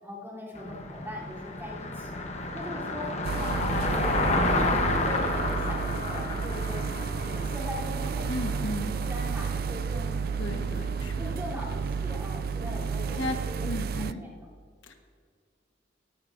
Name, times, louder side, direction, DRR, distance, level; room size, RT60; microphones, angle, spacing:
voice 1, 0.0-2.2 2.5-7.0 7.2-8.7 9.0-10.8 11.2-13.7 14.2-14.4, left 1 dB, 15° right, -6 dB, 3.5 m, -40 dB
Car passing by, 0.6-12.9, left 2 dB, 35° left, 1.2 m, -31 dB
sound 1, 3.2-14.1, right 6 dB, 50° right, 0.3 m, -32 dB
voice 2, 8.3-8.9 10.4-11.3 12.8-14.2 14.8-14.9, left 1 dB, 85° left, 3 dB, 1.4 m, -35 dB
18.0 x 14.0 x 2.7 m, 2.1 s
head